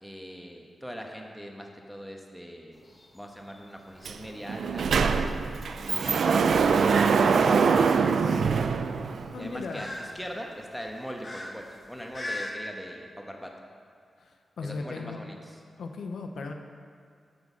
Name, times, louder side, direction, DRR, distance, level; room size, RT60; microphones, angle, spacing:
voice 1, 0.0-2.9 3.1-4.9 5.8-8.5 9.4-13.5 14.6-15.6, equal, ahead, 1 dB, 1.1 m, -41 dB
sound 1, 2.7-12.5, left 1 dB, 35° left, 1.3 m, -43 dB
Sliding door, 4.0-4.2 4.5-9.5, right 5 dB, 75° right, 0.4 m, -23 dB
voice 2, 9.3-9.9 14.2-15.2 15.8-16.5, left 4 dB, 85° left, 4 dB, 0.8 m, -37 dB
8.4 x 6.2 x 7.2 m, 2.2 s
wide cardioid pair, 110°, 0 cm